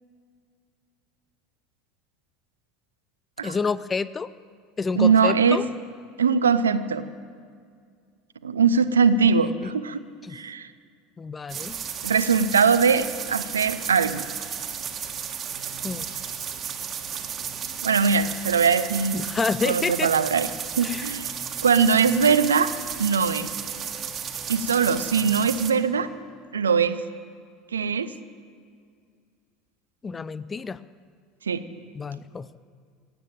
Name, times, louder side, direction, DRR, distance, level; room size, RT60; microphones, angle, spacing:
voice 1, 3.4-4.3 4.8-5.6 9.4-9.7 10.2-10.4 11.2-11.8 15.8-16.1 19.1-20.1 20.8-21.2 30.0-30.8 31.9-32.6, left 5 dB, 25° left, 18 dB, 0.5 m, -29 dB
voice 2, 5.0-5.6 6.2-7.0 8.4-10.0 10.3-10.7 12.0-14.2 17.8-19.2 19.7-20.5 20.8-21.3 21.6-22.7 23.0-23.5 24.5-26.1 26.5-27.0 27.7-28.1 31.5-31.6, right 6 dB, 80° right, 13 dB, 0.6 m, -21 dB
sound 1, 11.5-25.7, right 8 dB, 35° right, 1.5 m, -33 dB
16.5 x 9.2 x 9.0 m, 2.1 s
figure-of-eight pair, 75°, 0 cm